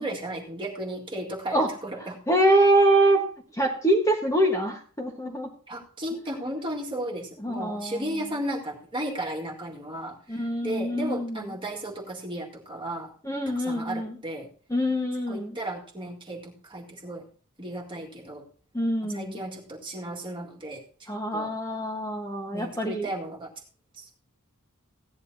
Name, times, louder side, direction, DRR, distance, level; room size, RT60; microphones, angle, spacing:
voice 1, 0.0-2.2 5.7-13.1 13.6-14.5 15.3-17.2 17.6-18.4 19.0-21.5 22.5-23.5 23.9-24.1, right 1 dB, 20° right, -1 dB, 2.0 m, -35 dB
voice 2, 2.3-3.2 3.5-5.5 7.4-8.0 10.3-11.4 13.2-14.1 14.7-15.6 18.7-19.3 21.1-23.1, right 1 dB, 15° left, 1 dB, 1.4 m, -24 dB
16.0 x 10.5 x 2.8 m, 0.41 s
head